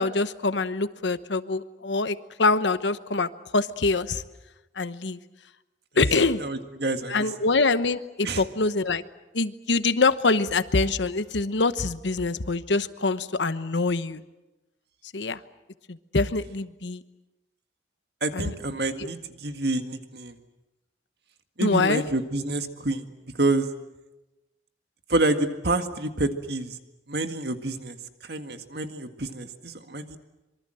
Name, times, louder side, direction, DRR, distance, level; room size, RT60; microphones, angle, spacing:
voice 1, 0.0-4.2 4.8-5.2 6.0-6.4 7.1-9.0 9.3-14.2 15.1-15.4 15.9-17.0 18.3-18.5 19.0-19.1 21.6-22.0, left 3 dB, 80° left, 13 dB, 1.0 m, -25 dB
voice 2, 6.4-7.3 8.2-8.4 18.2-20.4 21.6-23.1 23.3-23.7 25.1-26.8 27.1-28.0 28.2-30.2, right 2 dB, 60° right, 7 dB, 1.9 m, -28 dB
26.0 x 24.0 x 7.8 m, 1.0 s
head